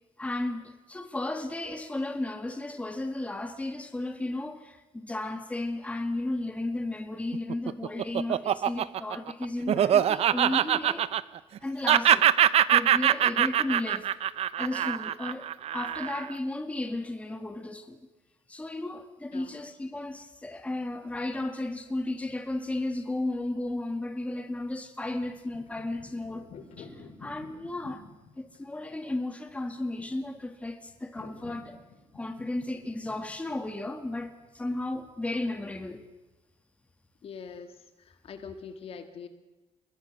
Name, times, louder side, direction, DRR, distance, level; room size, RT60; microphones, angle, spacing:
voice 1, 0.2-11.1 11.6-12.3 12.7-14.1 14.6-18.0 18.5-26.5 26.8-28.0 28.4-31.8 32.1-36.0, left 2 dB, 10° left, 2.0 m, -34 dB
Laughter, 7.3-11.6 11.8-16.3, right 10 dB, 55° right, 0.7 m, -24 dB
sound 1, 25.3-34.9, left 4 dB, 70° left, 7.1 m, -51 dB
voice 2, 37.2-39.3, left 6 dB, 50° left, 1.9 m, -43 dB
29.5 x 20.5 x 6.1 m
cardioid pair, 125°, 12 cm